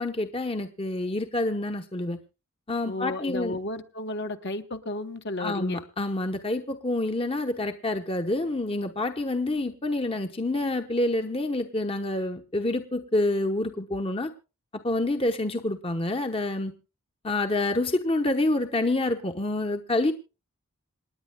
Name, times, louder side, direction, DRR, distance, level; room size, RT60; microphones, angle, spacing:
voice 1, 0.0-2.2 2.7-3.6 5.4-14.3 14.8-16.7 17.2-20.1, left 2 dB, 25° left, 6 dB, 1.0 m, -27 dB
voice 2, 2.8-5.8, left 2 dB, 50° left, 6 dB, 1.1 m, -33 dB
27.5 x 10.0 x 2.2 m, 0.31 s
head